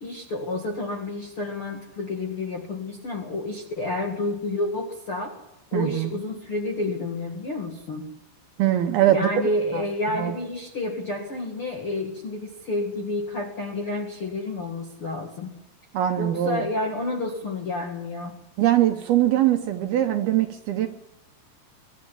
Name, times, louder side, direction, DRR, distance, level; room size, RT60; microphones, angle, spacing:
voice 1, 0.0-5.3 5.7-8.1 9.1-15.5 16.2-18.4, left 2 dB, 50° left, 1 dB, 1.7 m, -30 dB
voice 2, 5.7-6.1 8.6-9.3 9.7-9.8 10.1-10.3 15.9-16.7 18.6-20.9, right 12 dB, 70° right, 6 dB, 2.5 m, -22 dB
23.0 x 11.5 x 10.0 m, 0.91 s
omnidirectional pair, 5.3 m